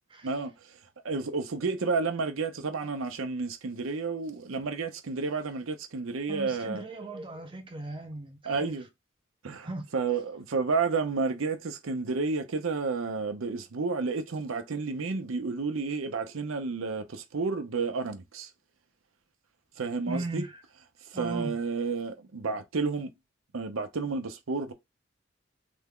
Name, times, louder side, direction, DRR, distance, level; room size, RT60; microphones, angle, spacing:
voice 1, 0.2-0.8 1.0-6.8 8.4-8.9 9.4-18.5 19.8-20.5 21.1-23.1 23.5-24.7, right 4 dB, 85° right, 0.6 m, -31 dB
voice 2, 6.3-8.7 9.6-9.8 20.1-20.6 21.1-21.5, right 2 dB, 25° right, 0.6 m, -37 dB
3.4 x 2.1 x 3.6 m
head